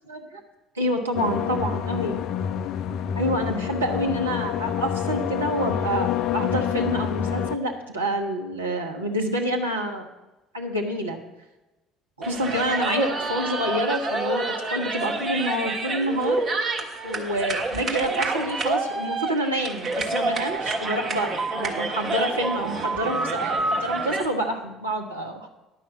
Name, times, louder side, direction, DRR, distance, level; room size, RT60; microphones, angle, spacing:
voice 1, 0.1-0.4 0.7-2.2 3.1-10.0 10.5-11.2 12.2-16.4 17.0-25.5, equal, 85° right, 1 dB, 1.1 m, -27 dB
sound 1, 1.1-7.6, left 9 dB, 50° left, 0.4 m, -27 dB
sound 2, 12.2-24.3, right 3 dB, 40° right, 1.4 m, -28 dB
10.0 x 5.8 x 7.7 m, 1.0 s
figure-of-eight pair, 55°, 0 cm